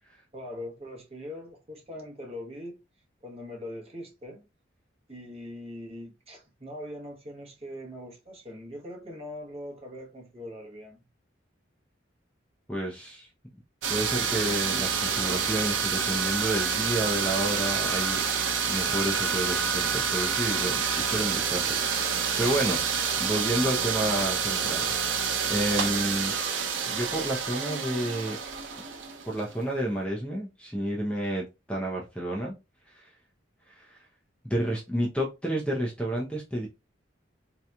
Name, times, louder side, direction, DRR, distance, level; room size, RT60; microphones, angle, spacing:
voice 1, 0.3-2.8 3.2-4.4 5.1-11.0, left 1 dB, 30° right, 1.1 m, -41 dB
voice 2, 12.7-13.3 13.9-18.2 18.7-22.8 23.2-26.3 26.9-28.4 29.3-32.5 32.9-33.1 33.7-34.0 34.4-36.7, right 1 dB, 5° left, 0.6 m, -30 dB
sound 1, 13.8-29.5, right 6 dB, 85° right, 0.6 m, -28 dB
3.8 x 2.9 x 2.2 m
head